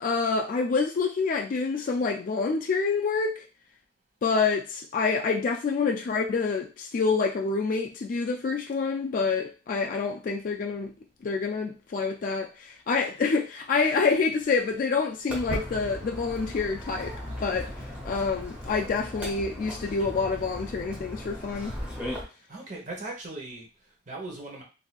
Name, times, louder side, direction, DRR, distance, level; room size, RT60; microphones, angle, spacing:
voice 1, 0.0-3.4 4.2-10.9 11.2-17.7 18.1-21.8, left 4 dB, 45° left, 2 dB, 0.3 m, -27 dB
Walk footsteps, 15.3-22.2, left 1 dB, 5° right, 1.1 m, -37 dB
voice 2, 22.5-24.6, right 2 dB, 45° right, 0 dB, 1.0 m, -39 dB
3.9 x 2.6 x 2.3 m, 0.33 s
head